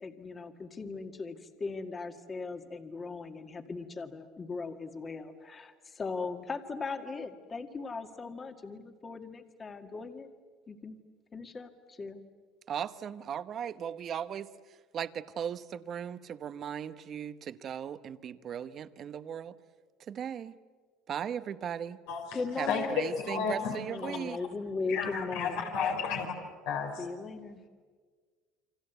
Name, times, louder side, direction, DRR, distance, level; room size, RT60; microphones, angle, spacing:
voice 1, 0.0-10.3 10.7-11.0 11.3-12.2 22.3-23.0 23.9-25.6 27.0-27.6, left 4 dB, 25° left, 6 dB, 1.9 m, -38 dB
voice 2, 12.7-19.5 20.1-20.6 21.1-22.0 22.6-24.4, right 8 dB, 40° right, 13 dB, 1.0 m, -37 dB
voice 3, 22.1-22.4 22.7-23.8 24.0-24.1 24.9-26.3 26.7-27.1, left 6 dB, 85° left, 1 dB, 4.2 m, -32 dB
29.0 x 25.0 x 8.2 m, 1.5 s
cardioid pair, 130°, 0 cm